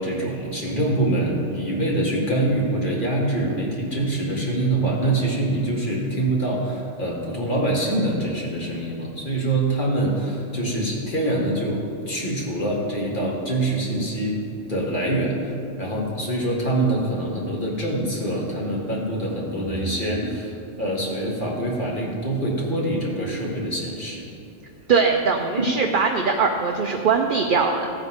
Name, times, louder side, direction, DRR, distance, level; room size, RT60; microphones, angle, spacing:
voice 1, 0.0-24.3, right 1 dB, 40° left, -3 dB, 1.8 m, -25 dB
voice 2, 24.9-27.9, right 5 dB, 50° right, 3 dB, 0.7 m, -21 dB
15.0 x 8.0 x 3.6 m, 2.6 s
omnidirectional pair, 1.3 m